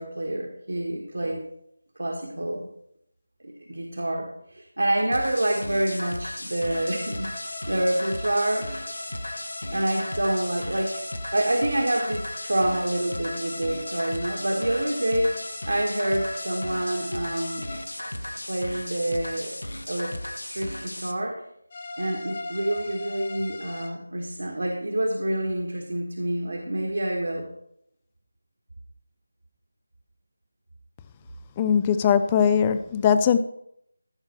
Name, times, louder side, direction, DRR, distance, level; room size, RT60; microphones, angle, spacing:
voice 1, 0.0-1.4 2.0-2.7 3.4-8.7 9.7-11.0 11.3-17.7 18.5-19.5 19.9-20.2 20.5-21.4 22.0-27.5, right 1 dB, 60° right, 1 dB, 1.7 m, -27 dB
sound 1, 5.1-21.1, left 1 dB, 70° left, 1.2 m, -36 dB
sound 2, 6.7-17.9 21.7-23.9, left 2 dB, 35° left, 1.3 m, -39 dB
voice 2, 31.6-33.4, left 7 dB, 15° left, 11 dB, 0.4 m, -20 dB
14.5 x 5.8 x 4.5 m, 0.74 s
figure-of-eight pair, 165°, 0 cm